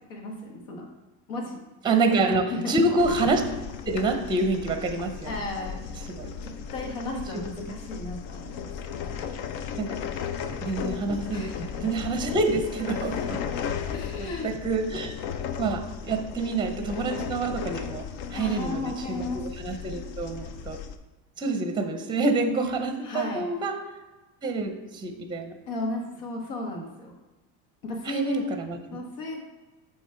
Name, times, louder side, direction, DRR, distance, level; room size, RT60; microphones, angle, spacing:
voice 1, 0.1-0.9 1.3-1.7 2.5-2.8 5.2-5.9 6.2-8.7 11.3-11.9 13.9-14.5 18.3-19.4 23.0-23.5 25.7-27.1 27.8-28.5 28.9-29.4, left 2 dB, 80° left, 1 dB, 1.6 m, -34 dB
voice 2, 1.8-3.4 3.9-5.4 6.1-6.3 7.1-7.7 9.8-10.0 10.5-11.5 11.8-13.4 14.2-15.1 15.6-20.8 21.4-23.8 24.4-25.6 28.1-29.0, right 3 dB, 10° right, 7 dB, 0.6 m, -27 dB
sound 1, 3.0-21.0, left 7 dB, 60° left, 0.6 m, -35 dB
7.1 x 3.3 x 4.4 m, 1.1 s
supercardioid pair, 120°, 43 cm